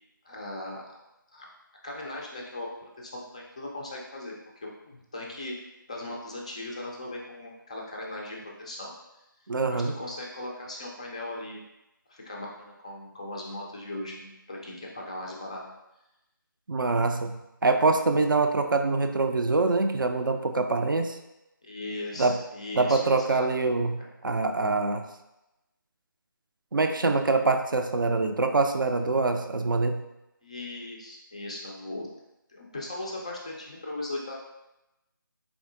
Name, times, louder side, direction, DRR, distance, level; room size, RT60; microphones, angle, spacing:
voice 1, 0.2-1.0 1.3-1.5 1.8-2.7 3.0-4.3 4.6-5.5 5.9-9.2 9.7-11.6 12.1-15.6 21.6-23.5 24.0-24.1 30.4-32.1 32.5-34.3, left 2 dB, 20° left, -2 dB, 0.3 m, -38 dB
voice 2, 9.5-9.9 16.7-21.2 22.2-22.4 22.7-25.0 26.7-30.1, right 3 dB, 65° right, 6 dB, 0.4 m, -25 dB
3.7 x 3.5 x 2.5 m, 0.93 s
figure-of-eight pair, 155°, 12 cm